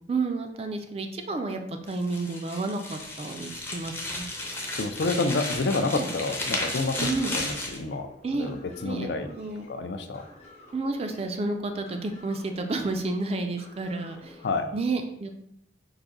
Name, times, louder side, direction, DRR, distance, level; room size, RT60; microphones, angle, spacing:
voice 1, 0.1-4.3 5.9-6.1 7.0-7.3 8.2-9.7 10.7-14.4 14.7-15.3, right 3 dB, 35° right, 5 dB, 0.4 m, -31 dB
sound 1, 1.9-7.8, left 2 dB, 15° left, 0.6 m, -34 dB
sound 2, 4.2-14.6, left 2 dB, 35° left, 0.8 m, -52 dB
voice 2, 4.8-8.1 8.3-9.3 9.7-10.2 14.4-14.7, left 3 dB, 65° left, 9 dB, 0.4 m, -29 dB
4.8 x 2.6 x 3.8 m, 0.75 s
head